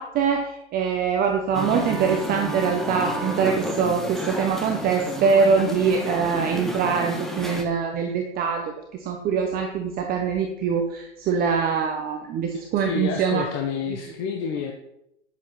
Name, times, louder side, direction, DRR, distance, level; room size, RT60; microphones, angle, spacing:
voice 1, 0.0-13.4 13.9-14.0, right 6 dB, 25° right, 3 dB, 1.3 m, -23 dB
Musical instrument, 1.5-7.6, equal, ahead, 1.6 m, -30 dB
voice 2, 12.8-14.7, left 6 dB, 35° left, 3 dB, 1.4 m, -29 dB
10.5 x 7.8 x 5.9 m, 0.83 s
hypercardioid pair, 120°, 35 cm